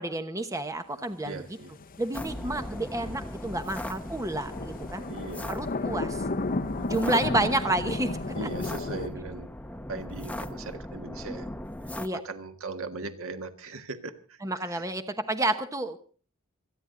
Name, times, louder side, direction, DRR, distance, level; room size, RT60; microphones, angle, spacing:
voice 1, 0.0-1.4 2.0-5.0 5.5-6.2 6.9-8.1 8.4-8.5 12.0-12.2 14.4-16.0, right 2 dB, 15° right, 8 dB, 1.1 m, -30 dB
voice 2, 1.2-1.7 2.4-2.5 5.1-5.5 6.9-7.1 8.3-9.5 9.9-11.5 12.1-14.4 14.6-14.8, right 3 dB, 65° right, 8 dB, 1.6 m, -39 dB
sound 1, 1.3-9.1, left 3 dB, 40° left, 0.8 m, -34 dB
sound 2, 2.1-12.1, left 1 dB, 5° left, 0.9 m, -39 dB
27.0 x 10.0 x 3.9 m, 0.42 s
head